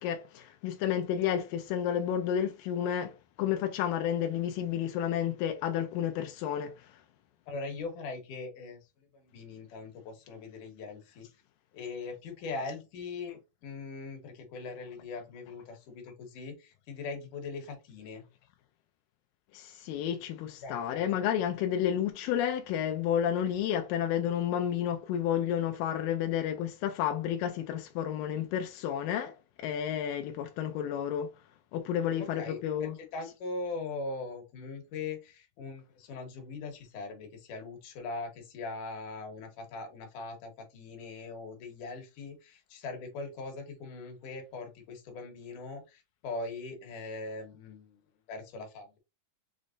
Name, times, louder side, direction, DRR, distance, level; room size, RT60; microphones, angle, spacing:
voice 1, 0.0-6.9 19.5-31.3 31.7-33.0, left 9 dB, 90° left, 2.3 m, -31 dB
voice 2, 7.5-8.8 9.1-11.3 11.7-18.2 20.6-21.1 32.2-48.0 48.3-49.0, left 3 dB, 75° left, 2.6 m, -41 dB
6.4 x 3.2 x 2.5 m
omnidirectional pair, 3.8 m